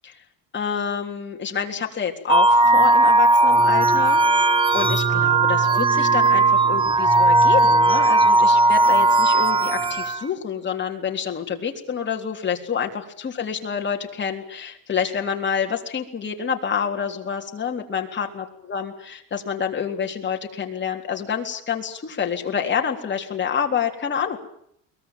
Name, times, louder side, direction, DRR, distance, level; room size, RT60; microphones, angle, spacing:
voice 1, 0.5-24.4, left 7 dB, 30° left, 2 dB, 3.6 m, -28 dB
sound 1, 2.3-10.2, right 2 dB, 15° right, 1.3 m, -17 dB
22.5 x 20.5 x 9.1 m, 0.69 s
cardioid pair, 140°, 38 cm